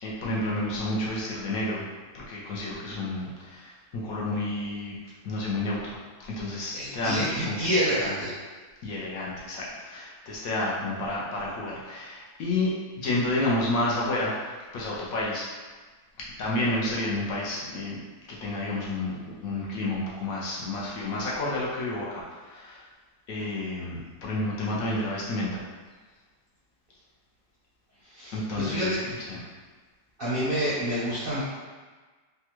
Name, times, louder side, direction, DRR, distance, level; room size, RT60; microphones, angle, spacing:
voice 1, 0.0-1.8 2.1-4.9 5.2-6.0 6.4-7.9 8.8-14.4 14.7-15.5 16.2-18.0 18.3-19.2 19.4-22.8 23.3-25.6 28.3-28.9 29.3-29.4, left 2 dB, 70° left, -5 dB, 0.9 m, -30 dB
voice 2, 6.7-8.3 28.0-29.0 30.2-31.4, equal, 55° right, -10 dB, 0.6 m, -28 dB
3.4 x 2.2 x 2.9 m, 1.4 s
omnidirectional pair, 1.7 m